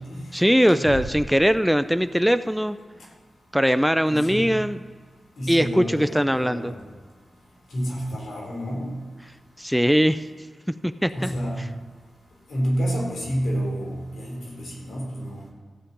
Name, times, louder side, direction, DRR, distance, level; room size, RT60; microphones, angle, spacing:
voice 1, 0.3-2.8 3.5-4.8 5.5-6.7 9.6-10.2 10.8-11.3, equal, ahead, 12 dB, 0.5 m, -21 dB
voice 2, 4.1-4.5 5.4-6.7 7.7-8.9 11.1-11.6 12.5-15.4, equal, 80° left, -2 dB, 4.1 m, -29 dB
14.5 x 5.1 x 8.6 m, 1.5 s
cardioid pair, 40°, 0 cm